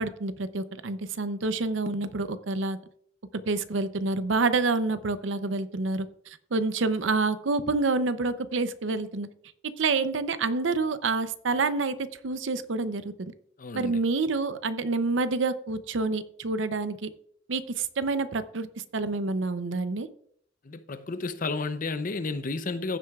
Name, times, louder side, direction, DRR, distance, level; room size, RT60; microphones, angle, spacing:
voice 1, 0.0-2.8 3.5-9.3 9.8-12.0 12.2-13.3 13.7-17.1 17.5-18.7 18.9-20.1, right 3 dB, 80° right, 0.6 m, -28 dB
voice 2, 13.6-14.0 20.6-23.0, left 3 dB, 45° left, 0.6 m, -32 dB
15.0 x 7.7 x 2.4 m
head